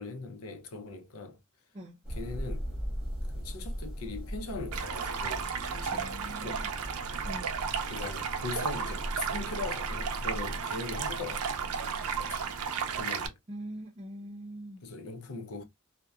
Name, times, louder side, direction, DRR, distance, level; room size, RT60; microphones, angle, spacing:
voice 1, 0.0-1.4 2.1-2.7 3.3-6.7 7.9-11.5 12.2-12.6 13.0-13.4 14.8-15.6, left 3 dB, 75° left, 0.6 m, -40 dB
sound 1, 2.0-13.0, equal, 5° right, 1.2 m, -39 dB
Stream, 4.7-13.3, right 7 dB, 80° right, 0.5 m, -34 dB
voice 2, 5.9-6.7 7.2-7.6 13.5-14.8, right 1 dB, 30° right, 0.5 m, -43 dB
2.7 x 2.1 x 2.3 m
head